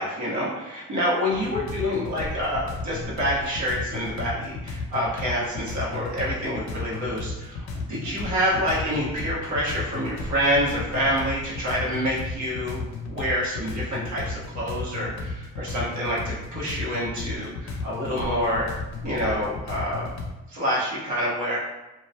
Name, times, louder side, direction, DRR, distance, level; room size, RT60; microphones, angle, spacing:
voice 1, 0.0-12.8 13.1-18.7 19.0-20.1 20.5-21.6, equal, 80° right, -6 dB, 0.9 m, -27 dB
sound 1, 1.3-20.3, left 3 dB, 65° left, 0.5 m, -34 dB
2.3 x 2.1 x 2.6 m, 1.0 s
cardioid pair, 95°, 29 cm